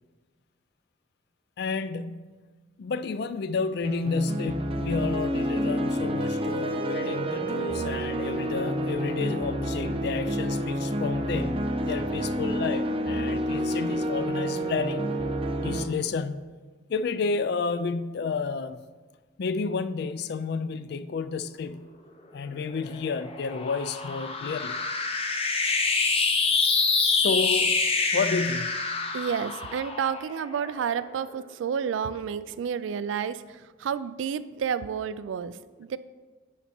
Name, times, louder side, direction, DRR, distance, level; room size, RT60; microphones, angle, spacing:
voice 1, 1.6-2.4 2.8-15.1 15.6-16.5 16.9-18.8 19.4-21.9 22.3-24.8 27.1-27.8 28.1-28.9, left 4 dB, 60° left, 0.4 m, -31 dB
sound 1, 3.8-15.8, equal, 30° right, 0.6 m, -29 dB
sound 2, 22.6-31.2, left 4 dB, 30° left, 0.7 m, -27 dB
voice 2, 29.1-36.0, right 7 dB, 85° right, 0.3 m, -30 dB
10.0 x 4.1 x 4.3 m
head